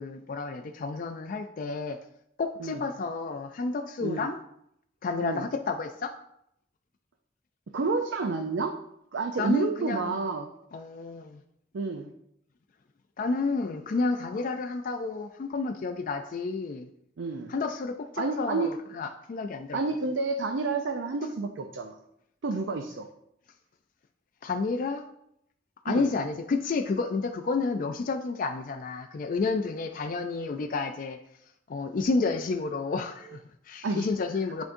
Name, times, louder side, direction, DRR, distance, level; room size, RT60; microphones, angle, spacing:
voice 1, 0.0-2.0 2.4-4.4 5.0-6.1 9.4-10.1 10.7-11.4 13.2-16.9 17.5-19.8 24.4-25.1 25.8-31.2 31.7-34.6, left 3 dB, 45° left, 5 dB, 0.3 m, -30 dB
voice 2, 7.7-8.7 9.1-10.5 11.7-12.1 17.2-17.5 18.2-18.7 19.7-22.0 22.4-23.1 25.9-26.1 33.8-34.1, right 3 dB, 80° right, 5 dB, 0.5 m, -29 dB
10.5 x 3.6 x 2.6 m, 0.76 s
head